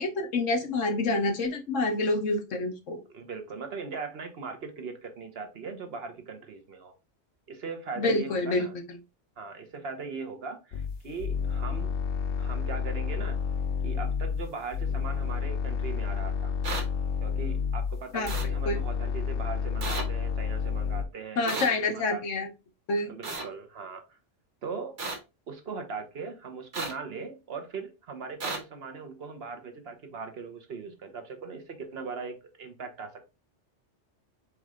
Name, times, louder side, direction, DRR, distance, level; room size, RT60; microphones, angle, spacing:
voice 1, 0.0-3.0 8.0-8.7 18.1-18.3 18.7-18.8 21.4-22.5 22.9-23.1, left 2 dB, 90° left, 1.3 m, -27 dB
voice 2, 3.1-6.9 7.5-8.7 9.4-11.9 12.4-13.4 13.8-16.5 17.2-22.2 23.1-24.2 24.6-25.0 25.5-33.2, right 4 dB, 60° right, 1.1 m, -39 dB
sound 1, 10.7-21.0, left 6 dB, 60° left, 0.8 m, -30 dB
sound 2, 16.6-16.8 18.3-18.4 19.8-20.0 21.5-21.7 23.2-23.4 25.0-25.2 26.7-26.9 28.4-28.6, right 3 dB, 75° right, 1.6 m, -32 dB
4.6 x 3.1 x 3.6 m
omnidirectional pair, 1.2 m